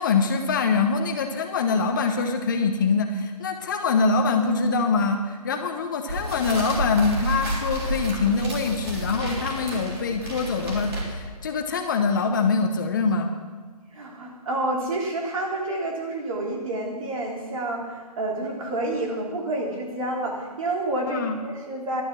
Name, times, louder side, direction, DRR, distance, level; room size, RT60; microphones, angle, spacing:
voice 1, 0.0-13.3 21.1-21.4, left 4 dB, 30° left, 5 dB, 0.8 m, -24 dB
sound 1, 6.1-11.4, right 1 dB, 40° right, 3.3 m, -30 dB
voice 2, 13.9-22.0, right 2 dB, 55° right, -2 dB, 3.4 m, -29 dB
12.0 x 9.5 x 6.1 m, 1.5 s
hypercardioid pair, 165°, 21 cm